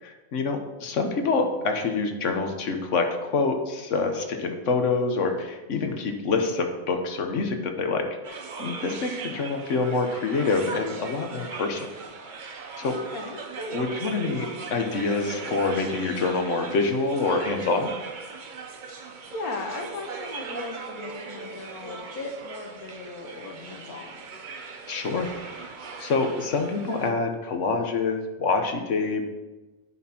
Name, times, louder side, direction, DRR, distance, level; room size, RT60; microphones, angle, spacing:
voice 1, 0.0-11.9 12.8-12.9 13.7-17.9 24.9-25.7 26.0-29.3, left 4 dB, 60° left, 5 dB, 1.2 m, -26 dB
sound 1, 8.2-27.1, right 5 dB, 50° right, 0.6 m, -39 dB
voice 2, 12.8-14.0 19.3-24.2, left 3 dB, 75° left, 3 dB, 1.6 m, -37 dB
10.5 x 4.3 x 4.3 m, 1.2 s
omnidirectional pair, 1.5 m